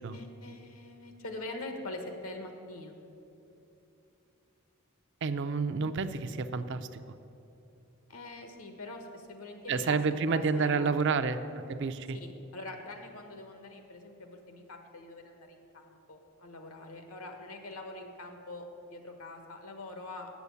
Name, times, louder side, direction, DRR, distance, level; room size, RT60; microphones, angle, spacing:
voice 1, 0.1-3.0 8.1-10.0 10.3-10.9 12.1-20.3, left 2 dB, 85° left, 5 dB, 1.3 m, -44 dB
voice 2, 5.2-6.9 9.7-11.4 11.7-12.2, right 4 dB, 55° right, 10 dB, 0.5 m, -29 dB
8.1 x 7.0 x 8.3 m, 2.8 s
head